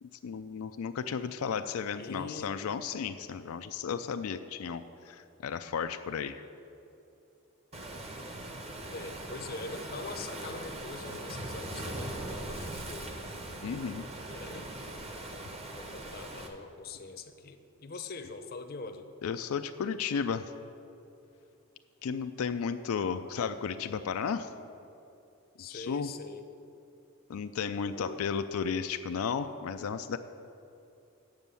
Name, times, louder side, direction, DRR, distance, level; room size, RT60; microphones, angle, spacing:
voice 1, 0.0-6.4 13.6-14.1 19.2-20.5 22.0-24.5 25.7-26.1 27.3-30.2, left 6 dB, 90° left, 9 dB, 0.4 m, -34 dB
voice 2, 1.9-2.5 8.9-13.2 14.3-14.7 15.7-19.1 25.6-26.4 27.9-28.2, left 3 dB, 45° left, 7 dB, 0.6 m, -43 dB
Waves surf, 7.7-16.5, right 1 dB, 30° right, 0.9 m, -40 dB
9.1 x 7.1 x 6.9 m, 2.7 s
head